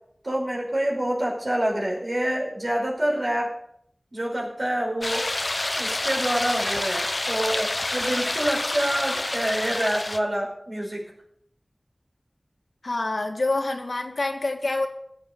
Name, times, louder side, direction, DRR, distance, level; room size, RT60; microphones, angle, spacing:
voice 1, 0.2-3.5 4.1-5.3 5.8-11.0, right 1 dB, 55° right, -3 dB, 5.2 m, -27 dB
sound 1, 5.0-10.2, left 2 dB, 50° left, 0.9 m, -28 dB
voice 2, 12.8-14.9, left 2 dB, 80° left, 4 dB, 1.8 m, -26 dB
17.0 x 7.9 x 6.9 m, 0.70 s
wide cardioid pair, 55°, 0 cm